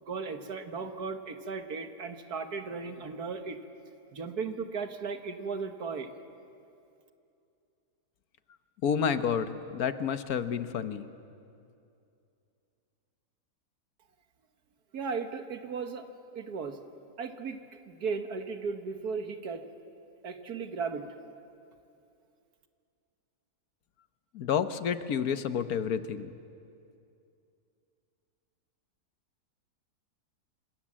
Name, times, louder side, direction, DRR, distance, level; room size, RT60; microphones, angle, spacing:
voice 1, 0.0-3.6 4.1-6.1 14.9-16.1 16.4-16.8 17.2-17.6 17.9-19.7 20.2-21.1, right 5 dB, 75° right, 7 dB, 1.9 m, -36 dB
voice 2, 8.8-11.1 24.3-26.3, left 7 dB, 70° left, 11 dB, 1.4 m, -30 dB
26.5 x 26.5 x 7.5 m, 2.6 s
omnidirectional pair, 1.7 m